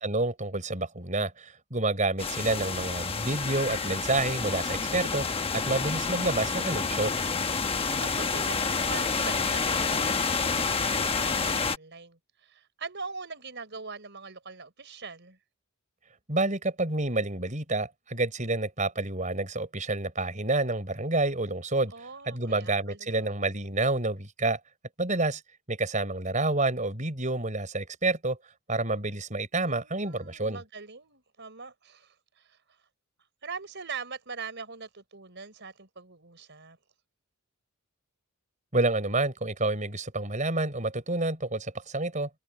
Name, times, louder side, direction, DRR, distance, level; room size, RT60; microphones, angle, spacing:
voice 1, 0.0-5.3 5.5-7.1 16.3-24.6 25.0-25.4 25.7-28.4 28.7-30.6 38.7-42.3, right 2 dB, 35° right, 5.9 m, -29 dB
sound 1, 2.2-11.8, left 4 dB, 25° left, 1.0 m, -29 dB
voice 2, 7.7-15.4 21.9-23.3 29.6-32.6 33.4-36.8, right 4 dB, 55° right, 5.3 m, -42 dB
head